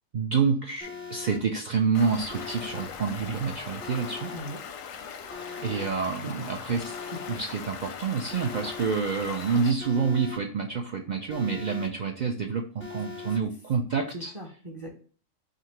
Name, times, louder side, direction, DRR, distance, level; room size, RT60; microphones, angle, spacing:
voice 1, 0.1-4.3 5.6-7.0 7.3-14.3, right 5 dB, 75° right, 2 dB, 0.4 m, -28 dB
Alarm, 0.8-1.4 2.3-2.9 3.8-4.4 5.3-5.9 6.8-7.4 8.3-8.9 9.8-10.4 11.3-11.9 12.8-13.4, left 5 dB, 15° left, 0.4 m, -40 dB
Stream, 1.9-9.7, left 7 dB, 85° left, 1.0 m, -40 dB
voice 2, 6.4-6.8 14.1-14.9, equal, 30° right, 0 dB, 0.6 m, -40 dB
3.8 x 2.8 x 4.3 m, 0.42 s
omnidirectional pair, 1.3 m